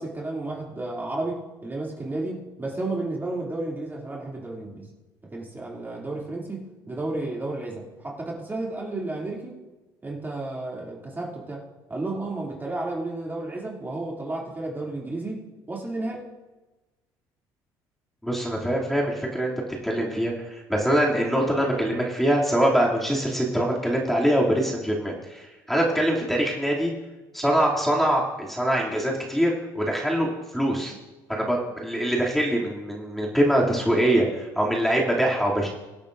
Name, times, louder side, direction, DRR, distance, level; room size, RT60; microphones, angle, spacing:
voice 1, 0.0-4.9 5.3-9.6 10.0-11.6 11.9-15.4 15.7-16.2, right 2 dB, 20° right, -3 dB, 2.8 m, -32 dB
voice 2, 18.2-19.5 19.8-26.9 27.3-30.3 30.5-30.9 31.3-35.7, right 1 dB, ahead, -4 dB, 2.8 m, -23 dB
23.5 x 8.6 x 2.6 m, 1.1 s
supercardioid pair, 80°, 9 cm